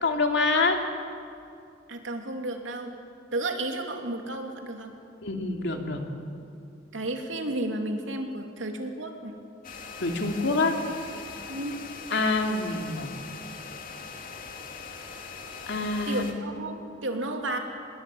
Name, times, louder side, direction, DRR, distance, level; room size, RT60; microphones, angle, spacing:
voice 1, 0.0-0.8 5.2-6.0 10.0-10.7 12.1-13.1 15.7-16.4, left 3 dB, 65° left, 3 dB, 2.7 m, -26 dB
voice 2, 1.9-2.9 3.3-4.9 6.9-9.3 11.5-11.8 16.1-17.6, right 2 dB, 80° right, 3 dB, 2.9 m, -32 dB
sound 1, 9.6-16.3, left 5 dB, 50° left, 2.7 m, -41 dB
26.5 x 21.0 x 8.7 m, 2.5 s
head